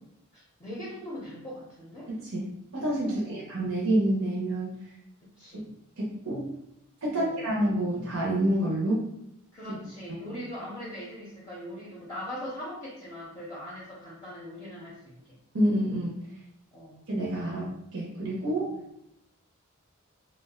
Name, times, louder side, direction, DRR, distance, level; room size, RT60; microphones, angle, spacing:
voice 1, 0.3-2.1 3.0-3.5 5.4-5.6 7.1-7.4 9.5-15.4 16.7-17.0 18.6-18.8, equal, 15° left, -6 dB, 0.6 m, -41 dB
voice 2, 2.1-4.7 6.0-6.5 7.0-9.1 9.7-9.8 15.5-16.2 17.1-18.7, right 1 dB, 70° right, -5 dB, 0.7 m, -28 dB
2.4 x 2.2 x 3.4 m, 0.79 s
head